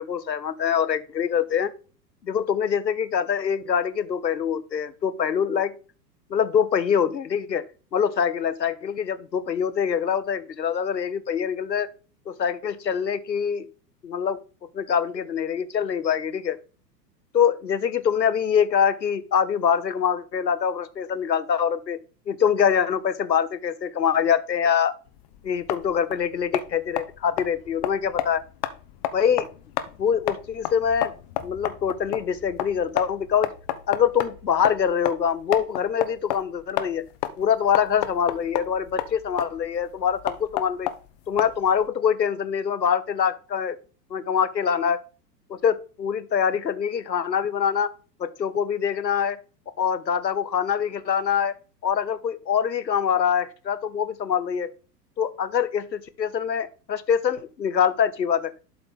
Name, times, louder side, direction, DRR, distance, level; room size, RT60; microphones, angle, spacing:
voice 1, 0.0-1.7 2.3-5.7 6.3-7.6 7.9-11.9 12.3-13.7 14.0-14.4 14.7-16.6 17.3-22.0 22.3-25.0 25.4-28.4 29.1-29.5 30.0-31.1 31.4-33.5 33.9-37.1 37.4-40.9 41.3-43.8 44.1-45.0 45.5-47.9 48.2-49.4 49.8-51.5 51.8-54.7 55.2-58.5, left 7 dB, 85° left, 0.8 m, -24 dB
sound 1, 25.1-41.9, left 12 dB, 25° left, 0.5 m, -32 dB
11.5 x 3.9 x 3.6 m
figure-of-eight pair, 100°, 50 cm